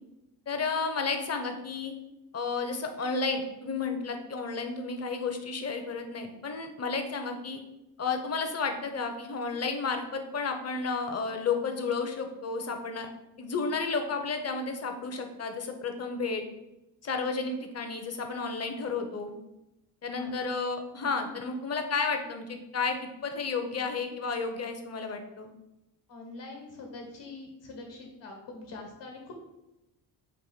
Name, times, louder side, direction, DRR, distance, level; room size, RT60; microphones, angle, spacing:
voice 1, 0.5-1.9 2.3-7.6 8.0-13.1 13.4-16.4 17.0-19.4 20.0-25.5, left 4 dB, 35° left, 5 dB, 0.8 m, -32 dB
voice 2, 26.1-29.3, left 3 dB, 65° left, 2 dB, 1.5 m, -44 dB
4.9 x 2.5 x 3.9 m, 0.94 s
supercardioid pair, 60°, 47 cm